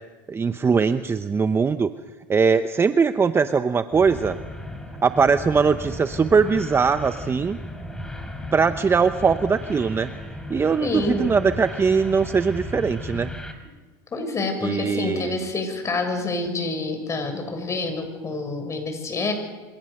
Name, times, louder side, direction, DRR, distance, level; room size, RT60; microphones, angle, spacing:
voice 1, 0.3-1.9 2.3-4.4 5.0-7.6 8.5-10.1 10.5-13.3 14.6-15.4, right 5 dB, 20° right, 10 dB, 0.9 m, -21 dB
sound 1, 3.9-13.5, left 1 dB, 5° left, 4.9 m, -36 dB
voice 2, 10.8-11.4 14.1-19.3, left 3 dB, 25° left, 6 dB, 7.1 m, -27 dB
27.0 x 27.0 x 6.6 m, 1.3 s
supercardioid pair, 100°, 11 cm